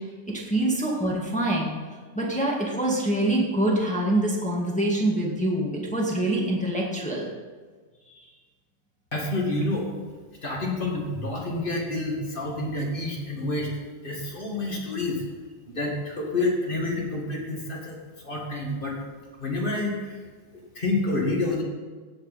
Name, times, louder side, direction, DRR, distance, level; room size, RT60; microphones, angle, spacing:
voice 1, 0.3-1.7 2.1-7.3 8.1-8.3, right 1 dB, 5° left, -2 dB, 0.7 m, -25 dB
voice 2, 9.1-9.9 10.4-13.7 14.0-15.2 15.7-18.0 18.2-18.9 19.4-20.2 20.7-21.6, left 2 dB, 25° left, -2 dB, 1.3 m, -28 dB
16.5 x 8.4 x 4.2 m, 1.4 s
omnidirectional pair, 3.9 m